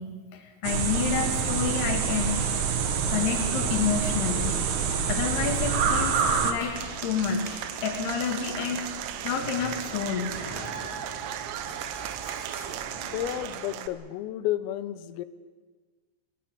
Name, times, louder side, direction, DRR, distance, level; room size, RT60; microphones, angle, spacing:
voice 1, 0.0-2.5 3.1-4.5 5.1-6.2 6.4-6.8 7.0-8.8 9.2-10.4, left 7 dB, 60° left, 1 dB, 3.9 m, -29 dB
sound 1, 0.6-6.5, right 6 dB, 65° right, 2.0 m, -26 dB
sound 2, 2.1-13.6, left 1 dB, 5° left, 3.5 m, -44 dB
Applause / Crowd, 6.7-13.9, right 11 dB, 80° right, 3.8 m, -36 dB
voice 2, 13.1-15.3, left 13 dB, 85° left, 14 dB, 3.7 m, -31 dB
28.5 x 16.5 x 8.6 m, 1.4 s
omnidirectional pair, 5.8 m